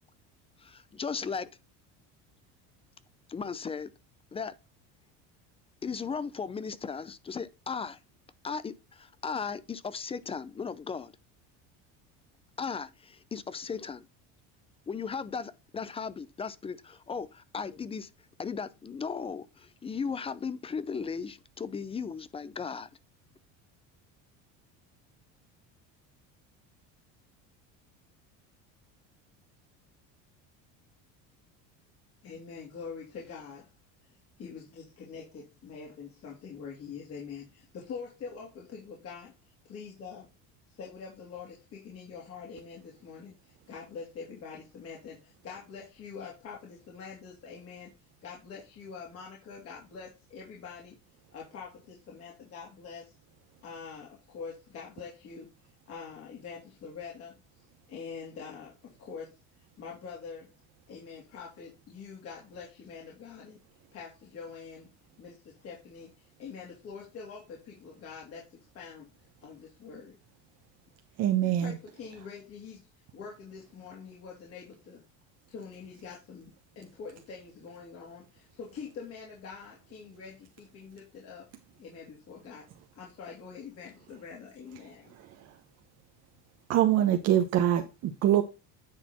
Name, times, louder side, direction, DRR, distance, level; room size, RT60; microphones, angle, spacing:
voice 1, 0.6-1.5 3.3-3.9 4.3-4.5 5.8-8.0 8.4-11.1 12.6-14.1 14.9-18.1 18.4-22.9, left 5 dB, 20° left, 0.5 m, -36 dB
voice 2, 32.2-33.7 34.4-39.4 39.6-40.3 40.7-47.9 48.2-51.0 51.3-53.1 53.6-55.5 55.9-57.4 57.9-59.4 59.8-60.6 60.9-63.6 63.9-64.9 65.2-69.1 69.4-70.2 71.4-75.0 75.5-81.5 81.8-82.7 83.0-85.1, left 5 dB, 45° left, 2.9 m, -45 dB
voice 3, 71.2-71.8 85.2-85.5 86.7-88.4, right 11 dB, 50° right, 1.0 m, -25 dB
9.7 x 4.2 x 4.2 m
cardioid pair, 130°, 32 cm